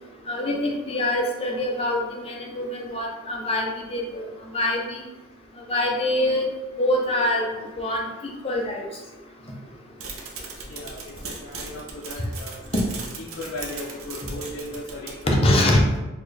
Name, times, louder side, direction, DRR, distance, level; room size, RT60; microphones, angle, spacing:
voice 1, 0.3-4.2 4.5-5.0 5.7-6.5 6.8-7.4 7.8-8.1 8.4-8.8 15.3-16.0, left 1 dB, 30° left, 0 dB, 0.6 m, -24 dB
sound 1, 10.0-15.3, right 4 dB, 75° right, 0.6 m, -38 dB
voice 2, 10.7-12.6 13.2-15.6, left 1 dB, 75° left, -4 dB, 0.5 m, -36 dB
4.2 x 2.6 x 3.2 m, 1.1 s
head